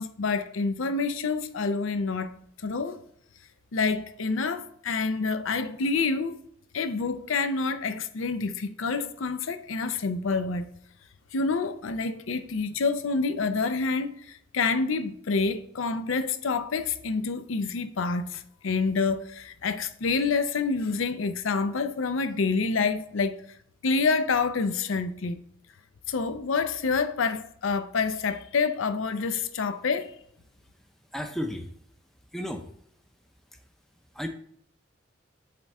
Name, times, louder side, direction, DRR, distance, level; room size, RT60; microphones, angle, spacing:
voice 1, 0.0-2.3 2.6-3.0 3.7-6.4 6.7-10.7 11.3-23.4 23.8-25.4 26.1-30.1, left 4 dB, 85° left, 0.5 m, -27 dB
voice 2, 31.1-31.7 32.3-32.7 33.5-33.6 34.1-34.3, equal, ahead, 0.5 m, -33 dB
7.6 x 3.6 x 4.2 m
head